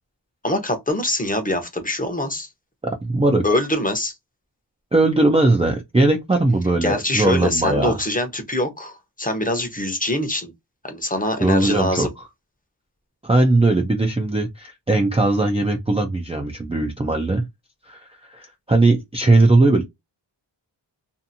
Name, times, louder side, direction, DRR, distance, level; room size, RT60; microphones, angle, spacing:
voice 1, 0.4-2.5 3.4-4.1 6.8-10.5 10.8-12.1, left 1 dB, 20° left, 0.7 m, -23 dB
voice 2, 2.8-3.5 4.9-8.0 11.4-12.1 13.2-17.5 17.9-19.9, right 2 dB, 15° right, 0.4 m, -19 dB
2.6 x 2.6 x 2.6 m
wide cardioid pair, 120°, 45 cm